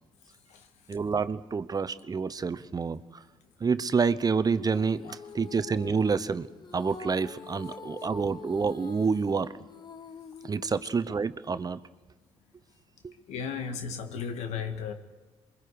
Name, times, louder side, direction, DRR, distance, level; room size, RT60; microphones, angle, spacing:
voice 1, 0.9-3.2 3.6-6.5 6.7-9.6 10.4-11.8 13.0-13.1, right 5 dB, 35° right, 0.9 m, -28 dB
Female singing, 4.7-11.2, left 6 dB, 40° left, 0.9 m, -46 dB
voice 2, 13.3-14.9, left 6 dB, 80° left, 1.8 m, -35 dB
27.5 x 23.0 x 4.8 m
supercardioid pair, 65°, 11 cm